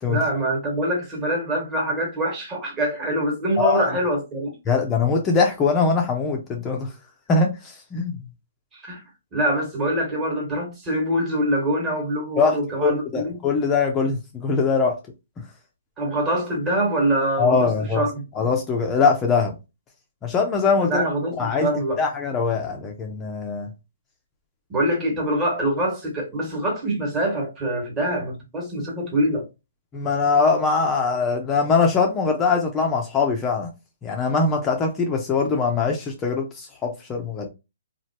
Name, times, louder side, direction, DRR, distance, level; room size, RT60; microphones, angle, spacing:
voice 1, 0.1-4.6 8.7-9.0 9.3-13.4 16.0-18.2 20.9-22.0 24.7-29.5, right 1 dB, 15° right, 1.2 m, -24 dB
voice 2, 3.6-3.9 4.7-6.9 7.3-7.5 7.9-8.2 12.4-12.5 12.8-15.0 17.4-18.0 18.4-19.5 20.2-21.0 21.4-21.7 22.0-23.7 29.9-33.7 34.0-37.5, left 4 dB, 15° left, 0.5 m, -22 dB
3.1 x 2.4 x 2.7 m
hypercardioid pair, 155°, 0 cm